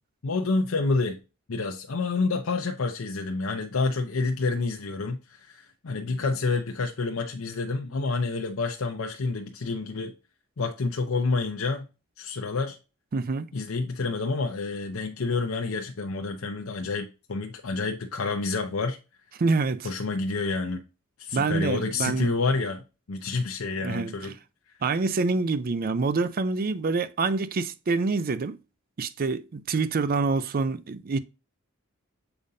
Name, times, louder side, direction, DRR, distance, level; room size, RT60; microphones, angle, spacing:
voice 1, 0.2-1.2 1.5-10.1 10.6-11.9 12.2-12.8 13.5-19.0 19.8-20.8 21.2-24.3, left 3 dB, 75° left, 0.7 m, -28 dB
voice 2, 13.1-13.5 19.4-19.9 21.3-22.3 23.8-24.1 24.8-28.6 29.0-31.2, right 4 dB, 45° right, 0.5 m, -26 dB
6.9 x 5.0 x 2.7 m
head